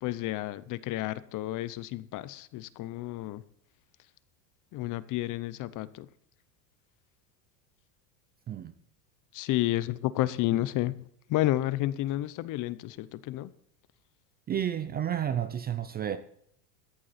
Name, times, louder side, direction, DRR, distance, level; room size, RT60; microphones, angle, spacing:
voice 1, 0.0-3.4 4.7-6.1 9.3-11.0 11.3-13.5, left 15 dB, 40° left, 0.7 m, -31 dB
voice 2, 14.5-16.2, right 9 dB, 20° right, 0.4 m, -31 dB
14.0 x 10.5 x 4.2 m
supercardioid pair, 130°, 49 cm